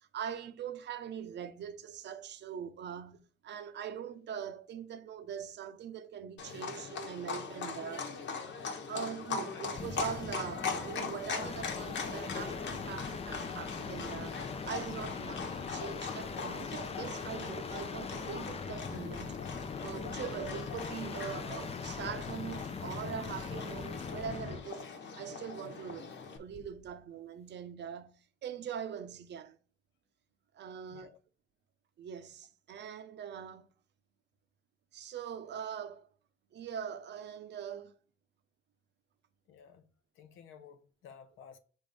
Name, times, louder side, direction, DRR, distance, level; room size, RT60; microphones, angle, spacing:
voice 1, 0.0-8.2 8.9-14.4 14.6-19.5 19.8-24.9 25.2-29.6 30.5-31.2 32.0-33.7 34.9-36.1 36.5-38.0, right 8 dB, 60° right, 0.7 m, -42 dB
Livestock farm animals working animals, 6.4-26.4, left 5 dB, 65° left, 1.2 m, -41 dB
sound 1, 9.6-24.7 26.5-26.9, left 5 dB, 30° left, 0.5 m, -41 dB
voice 2, 39.5-39.9 40.2-41.6, left 7 dB, 90° left, 0.8 m, -54 dB
5.3 x 3.5 x 5.2 m
cardioid pair, 90°, 20 cm